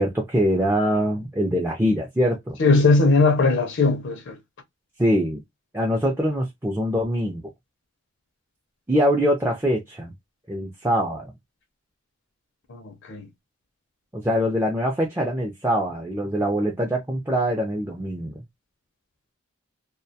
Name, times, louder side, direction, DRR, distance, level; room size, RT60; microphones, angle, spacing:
voice 1, 0.0-2.6 5.0-5.4 5.7-7.4 8.9-10.1 10.5-11.3 14.1-18.4, equal, 10° right, 0.4 m, -23 dB
voice 2, 2.6-4.4 12.7-13.3, left 3 dB, 55° left, 0.5 m, -19 dB
2.2 x 2.2 x 2.7 m
head